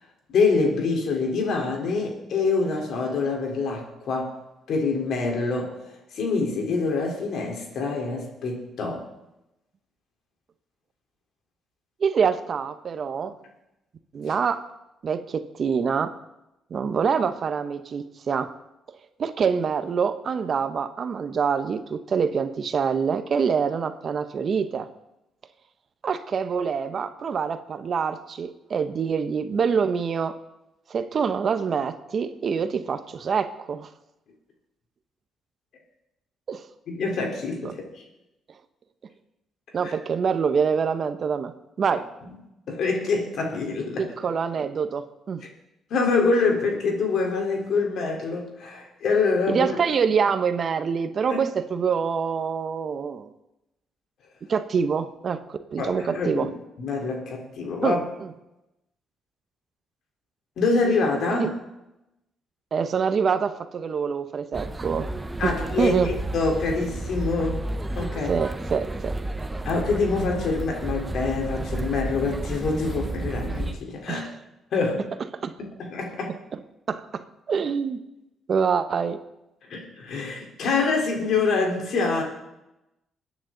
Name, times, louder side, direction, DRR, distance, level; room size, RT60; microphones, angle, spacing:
voice 1, 0.3-4.3 4.7-5.7 6.1-9.0 36.9-38.0 39.8-39.9 41.9-42.0 42.7-44.1 45.9-49.7 51.3-51.4 55.8-56.5 56.8-58.0 60.6-61.5 65.4-67.6 68.0-68.3 69.6-74.3 74.7-75.1 75.8-76.3 79.7-82.2, left 4 dB, 70° left, 0 dB, 3.9 m, -25 dB
voice 2, 12.0-13.4 14.1-14.7 15.0-16.2 16.7-18.5 19.2-24.9 26.0-30.4 30.9-33.9 36.5-36.6 37.6-37.7 39.7-42.0 44.0-45.5 49.5-53.3 54.5-56.5 57.8-58.3 61.3-61.5 62.7-65.1 65.4-66.1 68.3-69.2 74.1-74.3 75.4-75.5 76.9-78.0 78.5-79.2, right 6 dB, 50° right, 10 dB, 0.9 m, -25 dB
sound 1, 64.5-73.7, right 2 dB, 15° right, 1.0 m, -31 dB
22.0 x 9.5 x 4.0 m, 0.92 s
cardioid pair, 90°, 0 cm